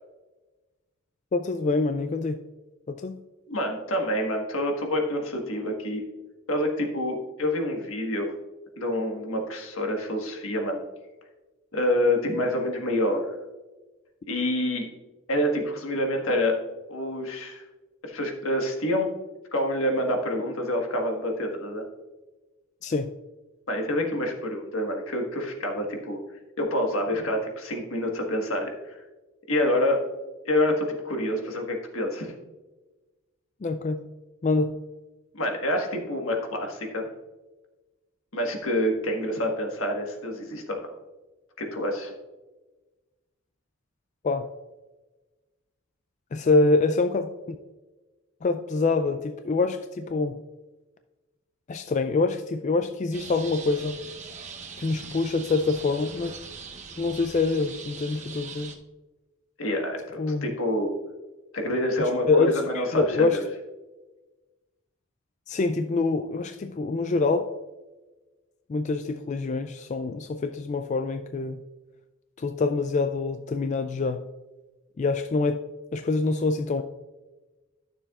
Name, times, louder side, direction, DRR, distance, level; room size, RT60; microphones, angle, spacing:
voice 1, 1.3-2.4 2.9-3.2 22.8-23.1 33.6-34.0 34.4-34.7 44.2-44.5 46.3-47.6 48.4-50.4 51.7-54.0 54.8-56.3 57.0-58.8 60.2-60.5 62.3-63.4 65.5-67.5 68.7-71.6 72.4-74.2 75.0-75.6 75.9-76.8, left 3 dB, 35° left, 8 dB, 0.3 m, -25 dB
voice 2, 3.5-6.0 6.5-8.3 8.8-10.8 11.7-13.4 14.3-14.9 15.3-16.6 16.9-17.6 18.0-19.1 19.5-21.8 23.7-26.2 26.6-29.0 29.5-30.1 30.4-32.3 35.3-37.1 38.3-40.8 41.6-42.1 59.6-60.9 61.5-63.4, left 1 dB, 80° left, 2 dB, 1.5 m, -27 dB
sound 1, 53.1-58.7, right 5 dB, 35° right, 0.9 m, -41 dB
12.5 x 6.8 x 2.4 m, 1.2 s
head